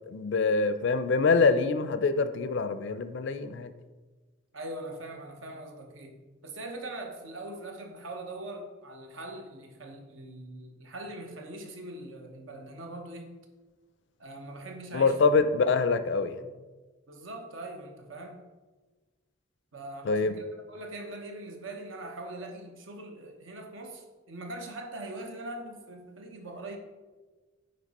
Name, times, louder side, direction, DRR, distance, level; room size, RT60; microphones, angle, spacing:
voice 1, 0.1-3.7 14.9-16.4 20.0-20.4, left 4 dB, 60° left, 11 dB, 0.4 m, -25 dB
voice 2, 4.5-13.4 14.2-15.2 16.4-16.5 17.1-18.5 19.7-26.8, right 1 dB, 70° right, 3 dB, 1.0 m, -42 dB
9.5 x 3.2 x 4.1 m, 1.3 s
head